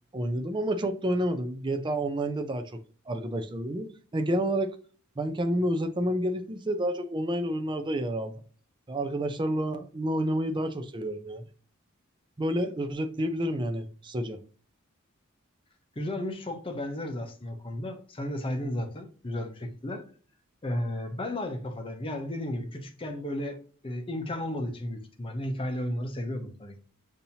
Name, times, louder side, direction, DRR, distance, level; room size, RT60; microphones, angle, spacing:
voice 1, 0.1-2.7 3.1-4.7 5.2-8.4 8.9-11.5 12.4-14.4, right 1 dB, 20° right, 0.5 m, -29 dB
voice 2, 16.0-20.0 20.6-26.8, left 1 dB, 25° left, 0.7 m, -34 dB
6.9 x 2.7 x 2.8 m
head